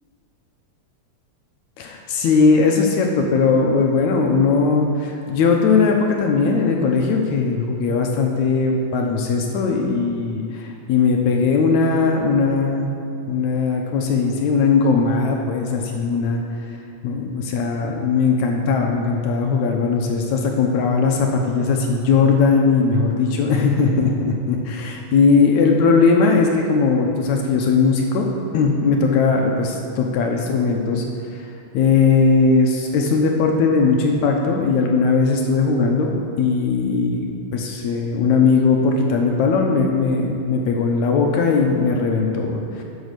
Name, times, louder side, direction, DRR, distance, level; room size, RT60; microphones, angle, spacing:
voice 1, 1.8-12.9 13.3-16.4 17.0-28.3 28.5-31.0 31.7-36.1 36.4-42.8, left 4 dB, 75° left, 1 dB, 2.2 m, -19 dB
9.3 x 6.4 x 6.8 m, 2.7 s
omnidirectional pair, 3.4 m